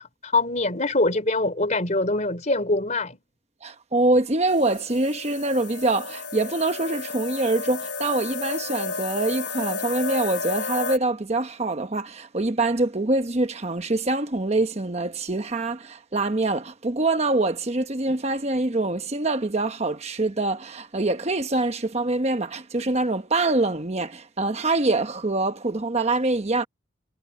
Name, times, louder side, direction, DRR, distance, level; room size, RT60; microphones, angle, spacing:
voice 1, 0.0-3.2, left 2 dB, 40° left, 3.6 m, -24 dB
voice 2, 3.6-26.7, right 2 dB, 35° right, 1.0 m, -25 dB
sound 1, 4.5-11.0, left 4 dB, 65° left, 3.6 m, -32 dB
head